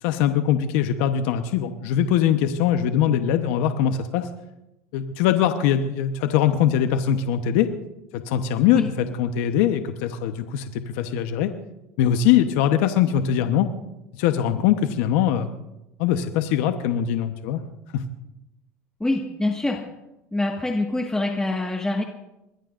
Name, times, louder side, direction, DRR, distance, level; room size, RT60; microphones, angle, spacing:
voice 1, 0.0-4.3 4.9-7.7 8.1-11.5 12.0-13.7 14.1-15.5 16.0-17.6 17.9-18.0, left 10 dB, 75° left, 8 dB, 1.0 m, -22 dB
voice 2, 19.0-19.8 20.3-22.0, left 2 dB, 10° left, 2 dB, 1.7 m, -25 dB
24.5 x 21.0 x 2.6 m, 0.92 s
supercardioid pair, 95°, 8 cm